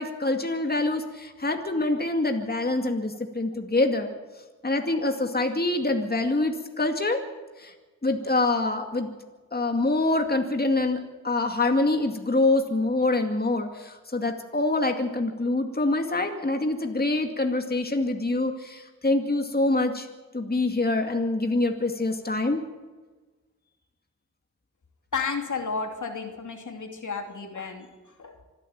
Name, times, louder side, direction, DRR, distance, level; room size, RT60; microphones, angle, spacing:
voice 1, 0.0-4.1 4.6-7.2 7.6-7.7 8.0-9.1 9.5-20.1 20.3-22.6, left 2 dB, 30° left, 4 dB, 2.3 m, -25 dB
voice 2, 25.1-28.4, left 5 dB, 75° left, 3 dB, 3.0 m, -32 dB
26.0 x 11.5 x 9.4 m, 1.3 s
wide cardioid pair, 65°, 31 cm